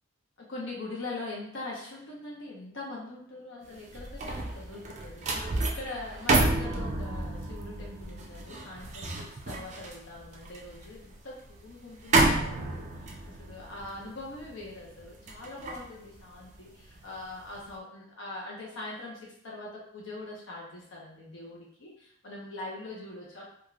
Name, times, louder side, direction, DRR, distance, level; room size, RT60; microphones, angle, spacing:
voice 1, 0.4-23.5, left 2 dB, 75° left, -4 dB, 0.7 m, -42 dB
sound 1, 3.7-17.0 17.4-17.7, right 2 dB, 35° right, 0.4 m, -31 dB
3.1 x 2.3 x 2.3 m, 0.69 s
head